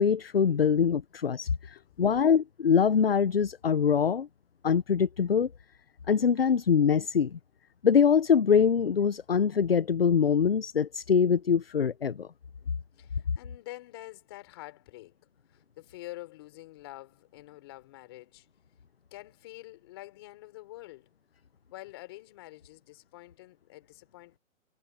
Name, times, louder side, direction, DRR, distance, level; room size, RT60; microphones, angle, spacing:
voice 1, 0.0-4.3 4.6-5.5 6.1-7.4 7.8-12.3, left 7 dB, 45° left, 0.8 m, -24 dB
voice 2, 1.7-2.2 13.0-15.2 15.5-18.5 19.1-21.1 21.7-24.4, left 18 dB, 20° left, 4.2 m, -47 dB
hypercardioid pair, 175°, 41 cm